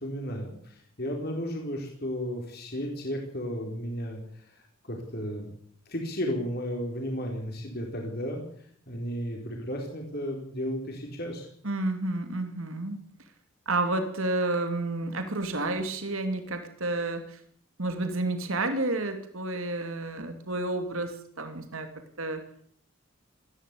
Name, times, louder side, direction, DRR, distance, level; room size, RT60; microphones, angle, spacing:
voice 1, 0.0-5.5 5.9-8.4 8.9-11.5, equal, 45° left, 1 dB, 4.4 m, -34 dB
voice 2, 11.6-13.0 13.7-17.4 17.8-21.9 22.2-22.4, right 2 dB, 70° right, 7 dB, 2.8 m, -30 dB
19.5 x 16.0 x 8.4 m, 0.62 s
head